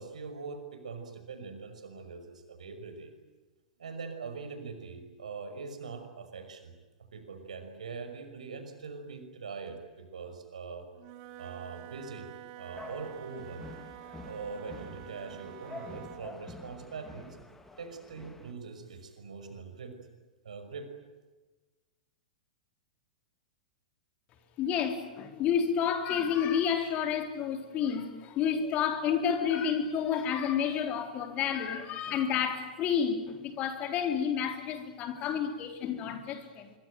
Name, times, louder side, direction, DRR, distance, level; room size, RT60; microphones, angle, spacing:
voice 1, 0.0-3.1 3.8-6.7 7.1-10.9 11.4-13.7 14.2-17.4 17.8-20.0 20.4-20.9, right 4 dB, 70° right, 5.7 m, -42 dB
Wind instrument woodwind instrument, 10.9-16.3, right 12 dB, 40° right, 2.2 m, -48 dB
sound 1, 12.7-18.5, left 2 dB, 10° left, 2.8 m, -48 dB
voice 2, 24.6-36.7, left 7 dB, 35° left, 3.9 m, -30 dB
25.5 x 23.5 x 9.2 m
figure-of-eight pair, 100°, 4 cm